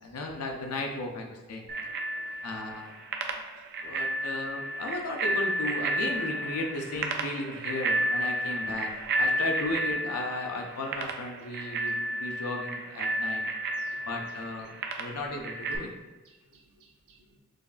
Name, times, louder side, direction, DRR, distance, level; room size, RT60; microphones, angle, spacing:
voice 1, 0.0-1.6 2.4-2.9 3.3-3.4 3.8-8.9 9.2-13.4 14.0-14.7 15.0-15.9, left 2 dB, 90° left, 2 dB, 0.5 m, -35 dB
Bicycle bell, 1.7-15.8, right 1 dB, 45° right, 0.3 m, -32 dB
voice 2, 16.2-17.3, right 4 dB, 85° right, -2 dB, 0.7 m, -59 dB
5.0 x 2.3 x 2.4 m, 1.1 s
head